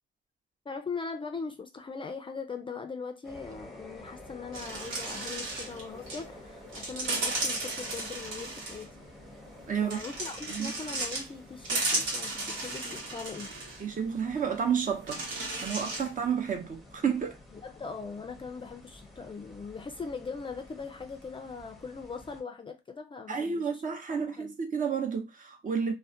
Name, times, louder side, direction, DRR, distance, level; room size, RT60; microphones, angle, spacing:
voice 1, 0.7-8.9 9.8-13.5 17.6-23.6 24.3-24.5, left 4 dB, 25° left, 0.4 m, -40 dB
sound 1, 3.2-22.4, left 1 dB, ahead, 0.7 m, -50 dB
sound 2, 4.5-6.2 6.7-8.9 9.9-11.3 11.6-13.8 14.4-14.5 15.1-16.1, right 2 dB, 75° right, 1.1 m, -34 dB
voice 2, 9.7-10.0 10.5-10.7 13.8-15.2 15.6-17.4 23.3-25.9, right 7 dB, 40° right, 0.7 m, -30 dB
2.3 x 2.1 x 2.6 m
cardioid pair, 90°, 20 cm